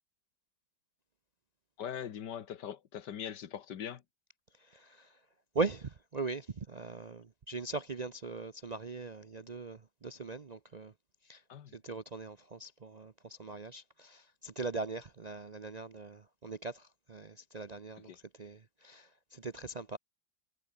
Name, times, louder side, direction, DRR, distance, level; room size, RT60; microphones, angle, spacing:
voice 1, 1.8-4.0 11.5-11.7 18.1-18.2, left 9 dB, 90° left, 1.9 m, -41 dB
voice 2, 4.6-5.2 5.5-10.9 11.2-11.4 11.7-20.0, right 3 dB, 45° right, 0.5 m, -40 dB
omnidirectional pair, 1.8 m